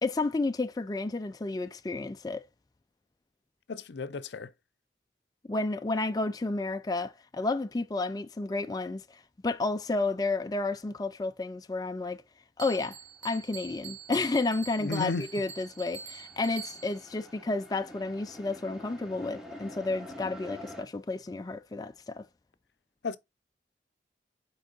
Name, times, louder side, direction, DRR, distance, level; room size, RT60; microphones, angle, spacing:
voice 1, 0.0-2.4 5.5-12.2 12.6-22.3, left 3 dB, 20° left, 0.3 m, -31 dB
voice 2, 3.7-4.5 14.8-15.3 23.0-23.2, left 3 dB, 75° left, 0.5 m, -33 dB
Bell, 12.6-17.1, right 6 dB, 75° right, 1.8 m, -45 dB
sound 1, 13.0-13.2 13.4-20.8, left 1 dB, 5° right, 1.1 m, -48 dB
6.5 x 4.5 x 3.8 m
head